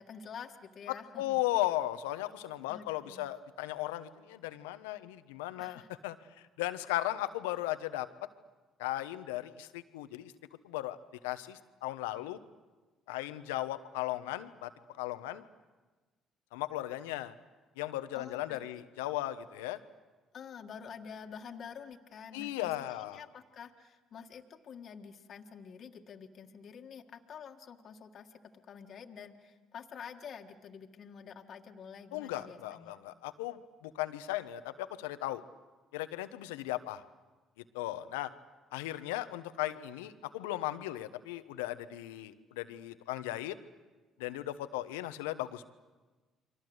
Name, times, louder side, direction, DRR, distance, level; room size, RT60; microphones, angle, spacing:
voice 1, 0.0-1.5 2.7-3.3 5.6-5.9 18.1-18.8 20.3-33.0, left 7 dB, 55° left, 3 dB, 1.8 m, -48 dB
voice 2, 1.2-6.1 6.6-8.1 8.8-10.3 10.6-11.0 11.2-12.4 13.1-14.7 15.0-15.4 16.5-17.3 17.8-19.8 22.3-23.2 32.1-35.4 35.9-37.0 37.7-38.3 38.7-43.6 44.2-45.7, left 15 dB, 85° left, 11 dB, 1.1 m, -36 dB
30.0 x 24.0 x 8.0 m, 1.3 s
hypercardioid pair, 60°, 0 cm